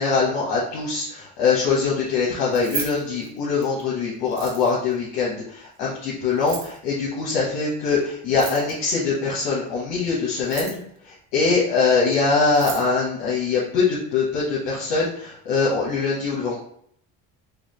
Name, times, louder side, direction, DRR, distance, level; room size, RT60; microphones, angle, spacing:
voice 1, 0.0-16.6, left 4 dB, 85° left, -6 dB, 1.1 m, -23 dB
Keys jangling, 2.4-3.8 4.3-4.9 6.3-6.8 8.3-8.9 10.3-11.0 12.1-12.2 12.4-12.9, right 6 dB, 85° right, 1.1 m, -35 dB
4.8 x 2.3 x 3.1 m, 0.67 s
supercardioid pair, 85°, 39 cm